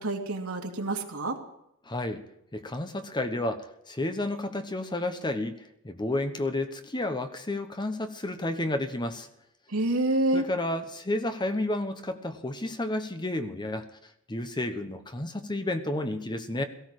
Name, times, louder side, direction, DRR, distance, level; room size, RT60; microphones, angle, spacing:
voice 1, 0.0-1.4 9.7-10.4, right 1 dB, 85° right, 1 dB, 2.6 m, -27 dB
voice 2, 1.8-2.2 2.5-9.3 10.3-13.9 14.3-16.6, left 1 dB, 20° left, 8 dB, 1.1 m, -31 dB
17.5 x 15.5 x 4.9 m, 0.79 s
head